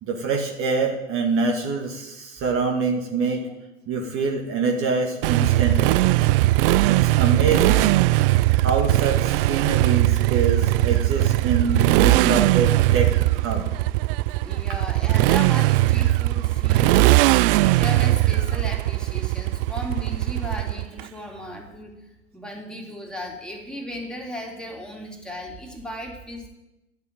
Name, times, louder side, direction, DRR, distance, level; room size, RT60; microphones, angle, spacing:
voice 1, 0.0-3.5 3.9-6.0 6.9-7.9 8.6-13.1 13.4-13.7, right 4 dB, 40° right, 2 dB, 1.9 m, -25 dB
Motorcycle, 5.2-21.0, right 17 dB, 55° right, 0.4 m, -19 dB
voice 2, 14.4-17.0 17.6-21.9 22.3-26.5, left 1 dB, ahead, 0 dB, 2.7 m, -35 dB
10.5 x 7.0 x 9.0 m, 0.96 s
hypercardioid pair, 95°, 34 cm